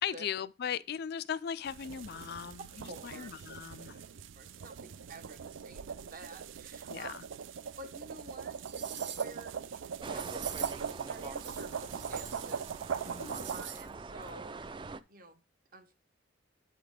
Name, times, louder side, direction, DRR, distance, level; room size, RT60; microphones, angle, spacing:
voice 1, 0.0-2.7 3.0-4.0 6.9-7.2 13.1-13.4, left 8 dB, 55° left, 0.4 m, -38 dB
sound 1, 1.7-13.6, right 7 dB, 85° right, 0.4 m, -41 dB
voice 2, 2.9-3.3 4.4-7.1 7.8-14.6 15.1-15.4 15.7-15.9, right 2 dB, 45° right, 1.2 m, -51 dB
sound 2, 7.9-8.0 8.5-9.4 10.1-10.9 11.3-12.7 13.0-13.9 14.2-14.3, right 9 dB, 70° right, 0.8 m, -45 dB
sound 3, 10.0-15.0, right 3 dB, 25° right, 0.4 m, -44 dB
8.3 x 4.0 x 4.9 m
head